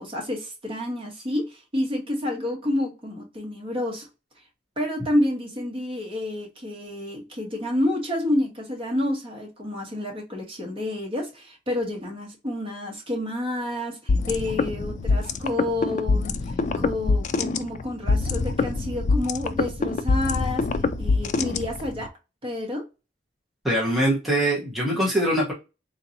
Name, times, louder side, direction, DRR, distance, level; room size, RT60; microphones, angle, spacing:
voice 1, 0.0-4.0 4.8-16.4 16.8-20.6 21.0-22.1 22.4-22.8, left 1 dB, 30° right, 1.2 m, -29 dB
sound 1, 14.1-22.1, left 3 dB, 40° left, 0.3 m, -24 dB
voice 2, 23.6-25.5, right 1 dB, ahead, 0.9 m, -23 dB
3.7 x 2.8 x 2.6 m
head